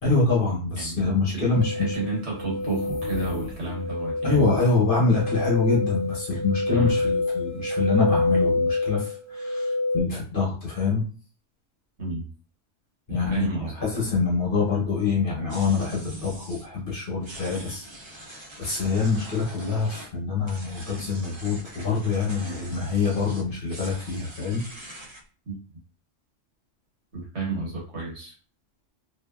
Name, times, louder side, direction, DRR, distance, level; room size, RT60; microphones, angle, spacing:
voice 1, 0.0-1.9 4.2-11.0 13.1-13.5 13.8-17.8 18.6-24.6, left 4 dB, 50° left, -4 dB, 0.8 m, -25 dB
voice 2, 0.7-4.5 6.7-7.1 12.0-12.3 13.1-13.7 25.4-25.6 27.1-28.3, right 3 dB, 60° right, -4 dB, 1.3 m, -31 dB
sound 1, 1.5-10.0, left 3 dB, 85° right, 1.0 m, -27 dB
sound 2, 2.5-4.0, left 1 dB, 85° left, 1.0 m, -37 dB
sound 3, 15.5-16.7 17.2-20.1 20.4-25.2, right 1 dB, 45° right, 0.4 m, -43 dB
2.7 x 2.3 x 2.2 m, 0.40 s
omnidirectional pair, 1.3 m